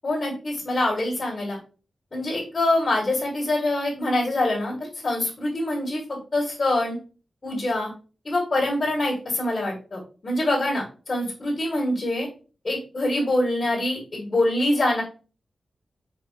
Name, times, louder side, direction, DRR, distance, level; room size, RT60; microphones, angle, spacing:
voice 1, 0.0-1.6 2.1-7.0 7.4-7.9 8.2-12.3 12.6-15.0, left 1 dB, 30° left, -4 dB, 1.6 m, -25 dB
4.7 x 4.2 x 2.5 m, 0.37 s
wide cardioid pair, 175°, 0 cm